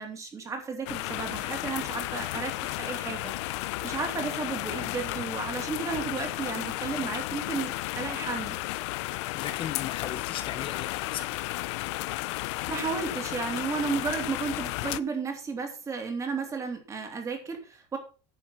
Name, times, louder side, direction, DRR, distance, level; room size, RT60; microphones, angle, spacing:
voice 1, 0.0-3.3 3.8-8.6 12.7-18.0, right 5 dB, 20° right, 2.8 m, -33 dB
sound 1, 0.9-15.0, left 19 dB, 80° left, 0.6 m, -33 dB
voice 2, 9.1-11.4, left 10 dB, 35° left, 1.0 m, -38 dB
10.5 x 6.3 x 5.9 m
cardioid pair, 150°, 15 cm